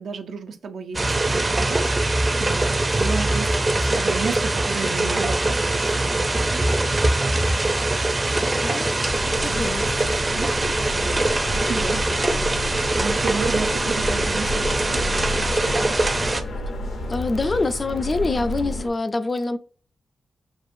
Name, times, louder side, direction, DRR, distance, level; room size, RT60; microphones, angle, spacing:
voice 1, 0.0-6.9 8.3-9.1 9.5-10.0 10.3-12.1 12.6-16.0, right 5 dB, 75° right, 0.5 m, -34 dB
sound 1, 0.9-16.4, right 2 dB, 25° right, 0.5 m, -22 dB
voice 2, 8.6-8.9 9.4-9.9 17.1-19.6, left 3 dB, 35° left, 0.4 m, -25 dB
sound 2, 9.0-18.9, left 2 dB, 75° left, 0.7 m, -31 dB
6.2 x 2.4 x 2.6 m
cardioid pair, 95°, 0 cm